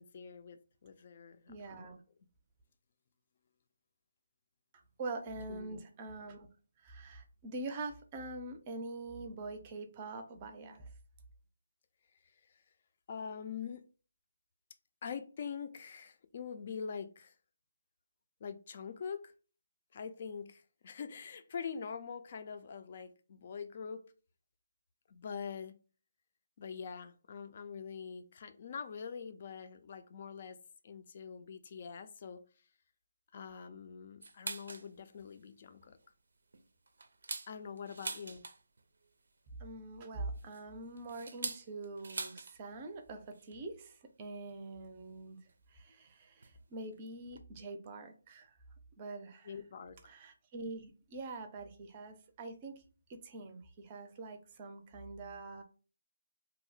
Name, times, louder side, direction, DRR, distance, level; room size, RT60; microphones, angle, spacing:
voice 1, 0.0-1.9 5.5-5.8 12.2-12.6 13.1-13.8 15.0-17.4 18.4-19.3 19.9-24.0 25.1-25.7 26.6-30.6 30.8-32.4 33.3-36.0 37.5-38.4 49.4-50.1, left 6 dB, 40° left, 0.4 m, -44 dB
voice 2, 1.5-2.0 5.0-6.5 6.8-10.9 39.6-45.4 45.7-48.6 49.0-49.5 50.0-52.8 53.1-55.6, right 2 dB, 25° right, 0.5 m, -44 dB
sound 1, 34.2-34.9 35.3-35.4 35.8-36.1 36.5-38.8 40.0-42.6 42.8-42.9 43.3-43.6 44.5-44.6 45.5-45.6 46.4-46.6 46.9-47.0 47.2-47.4, right 3 dB, 75° right, 0.5 m, -43 dB
2.8 x 2.1 x 3.9 m
hypercardioid pair, 160°, 0 cm